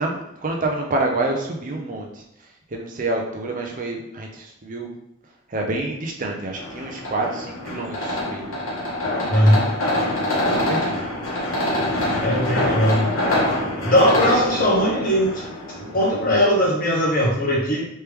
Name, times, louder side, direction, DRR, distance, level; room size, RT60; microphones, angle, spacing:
voice 1, 0.0-2.1 2.7-4.9 5.5-8.5 10.4-11.0, right 2 dB, 40° right, 1 dB, 0.5 m, -27 dB
sound 1, 6.5-16.6, left 1 dB, 90° left, 1.2 m, -25 dB
voice 2, 9.3-9.7 12.2-13.0 13.8-15.4 15.8-17.9, equal, 45° left, -5 dB, 1.2 m, -19 dB
3.3 x 2.9 x 3.3 m, 0.80 s
head